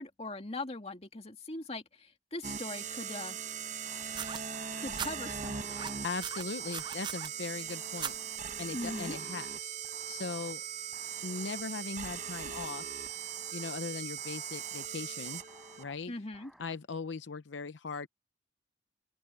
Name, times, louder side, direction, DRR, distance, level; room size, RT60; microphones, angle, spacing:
voice 1, 0.0-3.4 4.8-5.9 8.7-9.2 16.1-16.5, left 2 dB, 35° left, 2.3 m, -41 dB
sound 1, 2.4-15.8, right 7 dB, 40° right, 0.9 m, -40 dB
sound 2, 3.8-4.1 4.4-5.1 5.5-6.2 6.6-7.3 7.7-8.4 8.8-9.5 9.8-10.5 10.9-11.6 12.0-12.7 13.1-13.8 14.2-14.9 15.3-16.0 16.3-16.8, equal, ahead, 4.1 m, -59 dB
sound 3, 4.1-5.1 5.7-7.3 8.0-8.2 9.1-9.2, right 7 dB, 25° right, 0.4 m, -39 dB
voice 2, 6.0-8.1 8.6-9.7 10.1-10.6 11.2-12.8 13.5-15.4 15.8-16.1 16.6-18.1, left 4 dB, 75° left, 0.7 m, -39 dB
open air
head